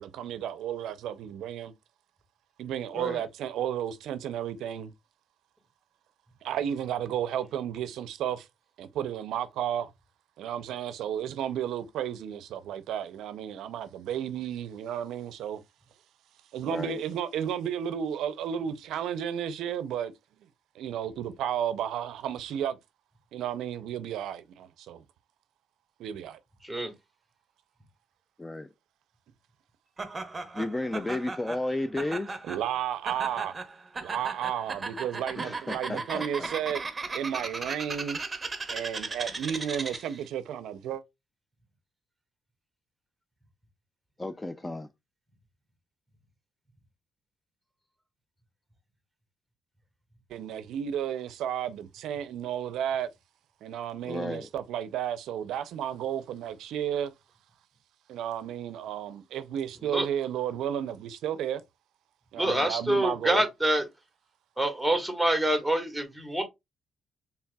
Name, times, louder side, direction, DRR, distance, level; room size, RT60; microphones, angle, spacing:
voice 1, 0.0-1.7 2.6-4.9 6.4-8.5 8.8-9.9 10.4-15.6 16.5-20.1 20.8-22.8 23.3-25.0 26.0-26.4 32.5-33.6 34.0-36.8 37.1-38.2 38.7-41.0 50.3-53.1 53.6-57.1 58.1-61.6 62.3-63.4, right 9 dB, 85° right, 0.4 m, -33 dB
voice 2, 16.7-17.0 28.4-28.7 30.5-32.3 35.4-36.5 44.2-44.9 54.1-54.5, left 2 dB, 15° left, 0.3 m, -33 dB
Laughter, 30.0-40.2, right 3 dB, 25° right, 0.8 m, -37 dB
voice 3, 62.4-63.8 64.6-66.4, right 1 dB, ahead, 1.4 m, -26 dB
4.5 x 3.4 x 2.2 m
cardioid pair, 90°, 0 cm